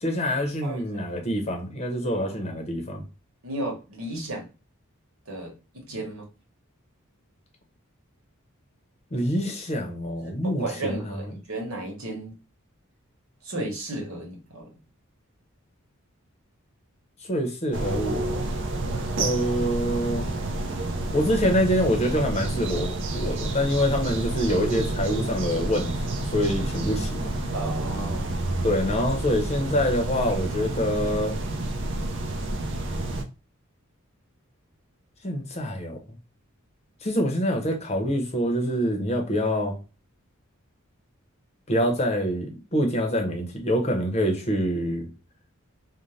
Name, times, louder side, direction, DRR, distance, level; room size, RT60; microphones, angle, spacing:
voice 1, 0.0-3.0 9.1-11.3 17.2-18.5 19.2-20.3 21.1-26.0 26.3-27.3 28.6-31.4 35.2-36.0 37.0-39.8 41.7-45.1, equal, 30° left, 0.7 m, -26 dB
voice 2, 0.6-1.1 2.1-2.5 3.4-4.5 5.3-6.3 10.2-10.3 10.6-12.3 13.4-14.7 27.5-28.4, right 2 dB, 80° right, 1.1 m, -34 dB
sound 1, 17.7-33.2, right 2 dB, 60° right, 0.4 m, -29 dB
2.6 x 2.1 x 3.1 m
head